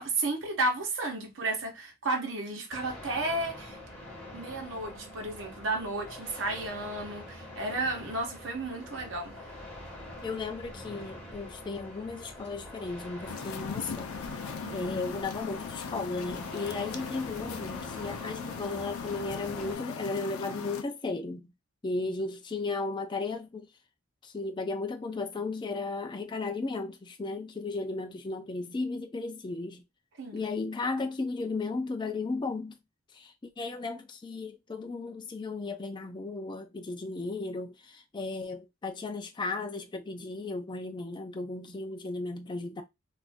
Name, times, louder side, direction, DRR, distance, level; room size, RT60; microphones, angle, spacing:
voice 1, 0.0-3.8 4.3-9.4 14.6-15.1 30.2-30.4, right 2 dB, 60° right, 1.0 m, -33 dB
sound 1, 2.7-19.8, left 1 dB, 5° left, 1.5 m, -45 dB
voice 2, 10.2-14.1 14.7-21.5 21.8-23.7 24.2-29.8 30.3-32.8 33.1-42.8, left 3 dB, 20° left, 0.4 m, -35 dB
sound 2, 13.3-20.8, left 6 dB, 80° left, 0.5 m, -39 dB
2.5 x 2.5 x 3.4 m
head